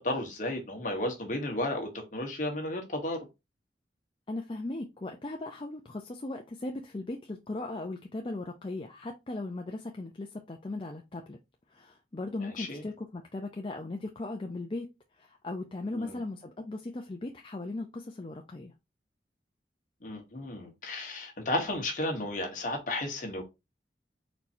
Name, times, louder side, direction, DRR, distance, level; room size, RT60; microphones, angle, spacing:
voice 1, 0.0-3.3 12.4-12.8 15.9-16.2 20.0-23.4, left 1 dB, 45° left, 1.4 m, -33 dB
voice 2, 4.3-11.4 11.7-14.9 15.2-18.7, left 2 dB, 30° left, 0.5 m, -38 dB
4.4 x 4.2 x 2.6 m
head